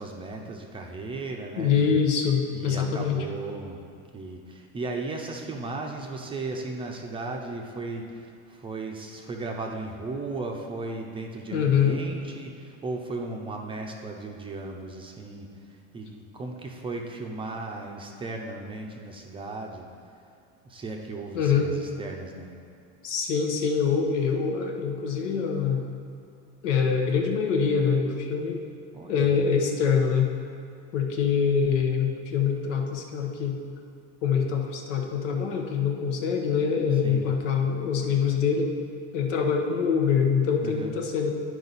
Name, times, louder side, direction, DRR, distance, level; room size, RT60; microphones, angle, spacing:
voice 1, 0.0-2.0 2.5-3.8 4.1-19.9 20.6-22.5 28.9-29.3 37.0-37.3 40.6-40.9, right 3 dB, 15° right, 1 dB, 0.5 m, -36 dB
voice 2, 1.6-3.2 11.5-12.0 21.3-21.7 23.0-25.9 26.6-28.6 29.1-30.3 30.9-33.6 34.2-38.7 39.1-41.3, left 6 dB, 90° left, 3 dB, 1.2 m, -24 dB
11.0 x 4.8 x 4.0 m, 2.4 s
supercardioid pair, 140°, 36 cm